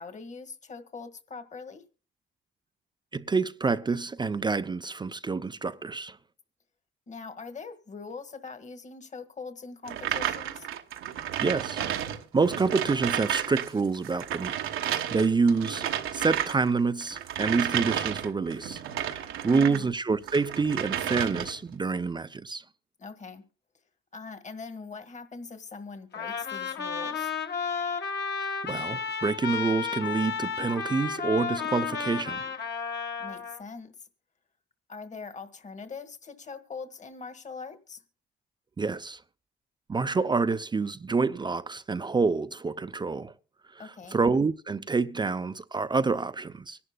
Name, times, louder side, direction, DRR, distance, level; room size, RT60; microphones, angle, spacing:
voice 1, 0.0-1.8 7.1-10.7 19.5-19.9 23.0-23.4 24.1-27.3 33.2-34.1 34.9-38.0 43.8-44.2, left 4 dB, 35° left, 1.6 m, -42 dB
voice 2, 3.1-6.2 11.4-11.8 12.3-14.6 15.1-22.6 28.6-32.5 38.8-39.2 39.9-43.3 43.7-46.8, right 4 dB, 20° right, 0.5 m, -27 dB
sound 1, 9.9-13.7 13.9-19.8 20.2-21.7, right 10 dB, 90° right, 1.1 m, -32 dB
Trumpet, 26.1-33.6, left 6 dB, 60° left, 1.7 m, -32 dB
24.5 x 11.0 x 2.2 m
cardioid pair, 90°, 20 cm